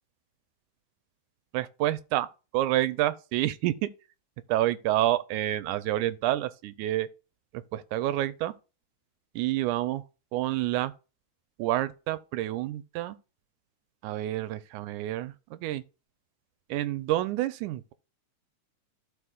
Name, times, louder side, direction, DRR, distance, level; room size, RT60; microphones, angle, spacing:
voice 1, 1.5-2.3 2.5-3.9 4.5-7.1 7.5-8.5 9.4-10.0 10.3-10.9 11.6-13.2 14.0-15.8 16.7-17.9, right 14 dB, 85° right, 2.0 m, -28 dB
14.5 x 4.9 x 2.4 m
omnidirectional pair, 3.5 m